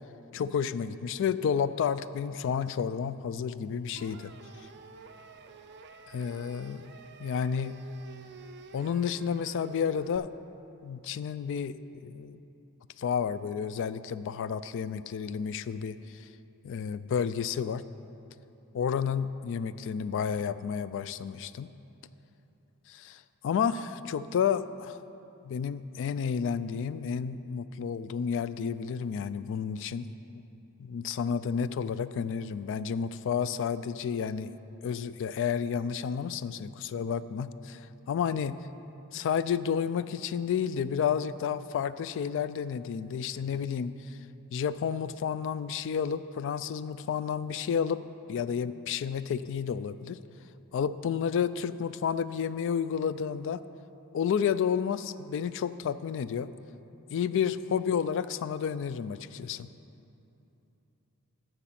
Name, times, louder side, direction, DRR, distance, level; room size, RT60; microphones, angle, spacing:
voice 1, 0.3-4.3 6.1-6.9 7.2-7.8 8.7-10.3 10.8-11.8 12.0-12.4 13.0-16.3 16.6-17.8 18.7-21.7 22.9-25.0 25.4-30.1 30.8-34.5 34.8-38.6 39.1-44.2 44.5-48.0 48.3-50.2 50.7-53.6 54.1-56.5 57.1-59.7, left 7 dB, 55° left, 15 dB, 0.3 m, -31 dB
sound 1, 4.0-10.2, right 4 dB, 50° right, 0.5 m, -50 dB
9.9 x 6.9 x 5.8 m, 2.9 s
head